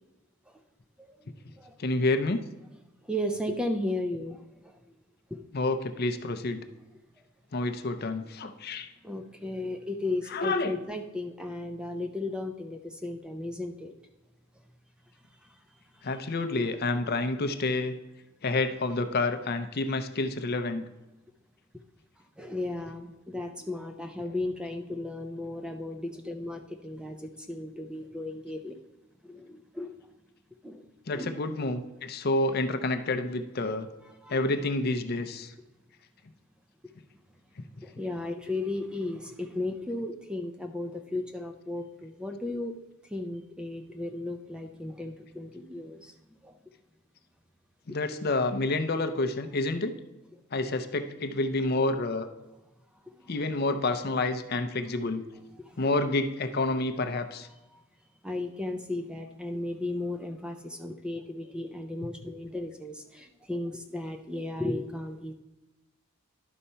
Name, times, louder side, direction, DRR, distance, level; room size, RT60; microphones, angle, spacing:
voice 1, 1.8-2.4 5.5-6.6 7.5-8.9 10.3-10.7 16.0-17.9 18.4-20.8 31.1-33.9 34.3-35.5 47.9-49.9 50.5-52.3 53.3-55.2 55.8-57.5, left 2 dB, 45° left, 9 dB, 0.6 m, -29 dB
voice 2, 3.0-4.9 5.3-5.4 7.2-7.3 9.0-13.9 15.4-16.2 22.2-28.8 29.2-30.1 30.6-30.9 31.1-31.4 34.0-34.4 37.8-42.8 43.0-46.6 52.9-53.3 55.6-55.9 57.7-57.8 58.2-65.3, left 1 dB, 5° right, 5 dB, 0.5 m, -35 dB
11.0 x 4.2 x 5.5 m, 1.0 s
head